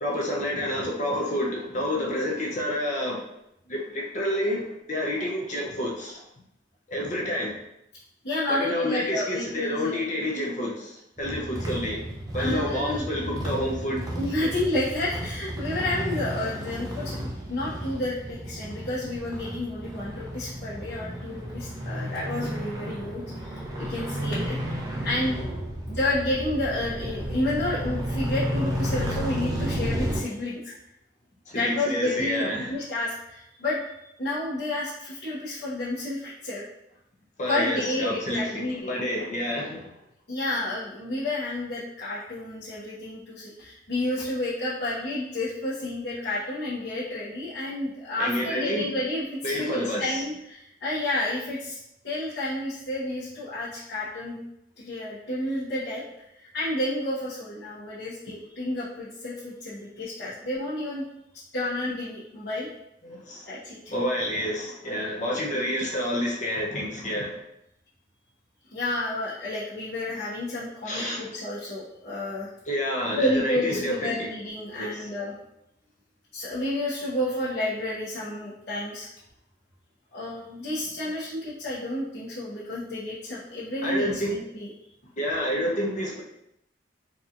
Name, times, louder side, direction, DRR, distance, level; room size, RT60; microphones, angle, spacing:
voice 1, 0.0-3.3 3.7-6.2 6.9-7.5 8.5-12.0 12.3-14.1 14.4-14.5 31.5-32.8 37.4-39.9 48.2-48.9 49.4-50.2 63.0-63.5 63.9-67.4 70.9-71.2 72.7-74.3 74.7-75.1 83.8-84.4 85.2-86.2, left 1 dB, 40° left, -3 dB, 0.6 m, -29 dB
voice 2, 8.2-10.0 12.4-13.1 14.2-24.6 25.0-25.4 25.9-30.7 31.5-36.6 37.5-38.9 40.3-54.4 54.8-56.0 56.4-61.0 61.5-62.7 63.5-63.9 65.4-65.6 68.7-72.5 73.1-75.3 76.3-79.1 80.1-84.7, left 1 dB, 75° left, -10 dB, 1.0 m, -30 dB
sound 1, 11.2-30.2, equal, 20° right, 0.5 m, -32 dB
4.0 x 2.9 x 2.4 m, 0.81 s
head